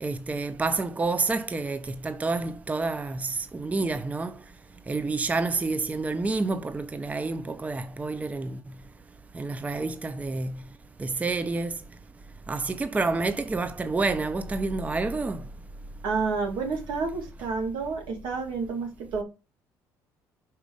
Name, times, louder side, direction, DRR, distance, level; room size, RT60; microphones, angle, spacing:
voice 1, 0.0-4.4 4.9-8.6 9.3-10.6 11.0-11.8 12.5-15.4, right 3 dB, 20° right, 0.5 m, -29 dB
voice 2, 16.0-19.2, right 4 dB, 75° right, 2.1 m, -29 dB
5.0 x 4.4 x 5.1 m
supercardioid pair, 80°, 8 cm